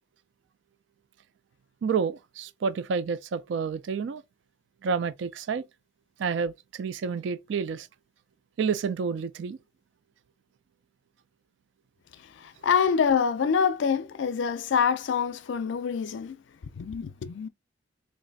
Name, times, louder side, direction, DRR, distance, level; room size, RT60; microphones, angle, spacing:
voice 1, 1.8-4.2 4.8-5.7 6.2-7.9 8.6-9.6, right 5 dB, 75° right, 0.3 m, -29 dB
voice 2, 12.4-16.4 16.8-17.5, left 6 dB, 75° left, 0.4 m, -26 dB
3.2 x 2.5 x 3.9 m
head